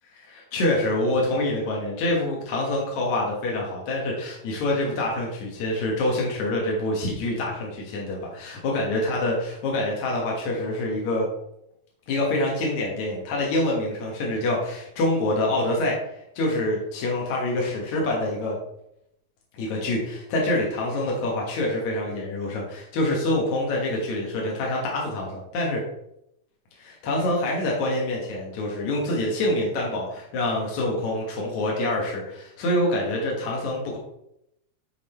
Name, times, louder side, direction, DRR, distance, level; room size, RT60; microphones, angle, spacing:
voice 1, 0.1-11.3 12.1-18.6 19.5-25.8 26.8-34.0, left 1 dB, 75° left, -2 dB, 2.8 m, -26 dB
10.0 x 3.9 x 4.3 m, 0.80 s
omnidirectional pair, 3.3 m